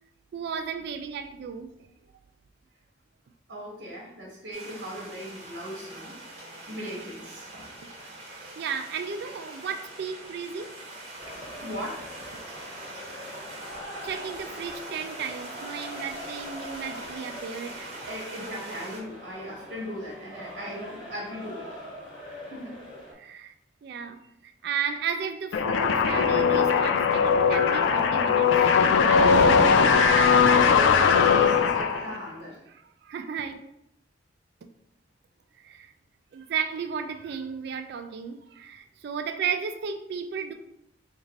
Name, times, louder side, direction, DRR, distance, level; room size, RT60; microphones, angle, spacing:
voice 1, 0.3-1.7 8.0-10.7 14.0-17.9 23.2-23.5 23.8-28.5 32.0-32.2 32.7-33.5 35.6-35.9 36.3-40.5, right 6 dB, 60° right, 7 dB, 0.3 m, -34 dB
voice 2, 3.5-6.2 6.7-7.7 11.6-12.1 18.0-21.9 22.5-22.7 29.1-32.7, equal, 85° right, -4 dB, 1.0 m, -38 dB
sound 1, 4.5-19.0, right 2 dB, 30° right, 0.8 m, -43 dB
sound 2, 11.2-23.1, equal, 30° left, 1.3 m, -43 dB
sound 3, 25.5-32.3, left 6 dB, 75° left, 0.3 m, -20 dB
3.2 x 2.5 x 3.9 m, 0.81 s
head